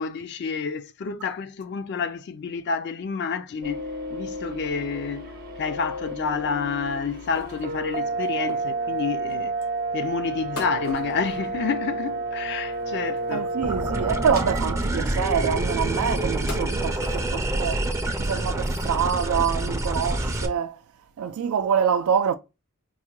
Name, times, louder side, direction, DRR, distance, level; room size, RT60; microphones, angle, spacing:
voice 1, 0.0-3.9 4.1-9.6 9.9-13.5, left 5 dB, 50° left, 0.4 m, -29 dB
sound 1, 3.6-14.6, right 2 dB, 45° right, 0.7 m, -31 dB
sound 2, 7.2-9.8 10.6-12.2 12.5-13.8 14.1-14.2 14.5-15.1 15.6-15.7 16.3-17.7 18.1-18.2 18.6-19.1 19.5-19.6 19.8-20.0 20.9-21.0, left 3 dB, 85° left, 1.0 m, -42 dB
voice 2, 13.3-17.9 18.2-20.8 21.2-22.4, right 7 dB, 80° right, 0.3 m, -26 dB
sound 3, 13.6-20.5, right 1 dB, 15° right, 0.4 m, -27 dB
4.5 x 2.1 x 2.9 m
head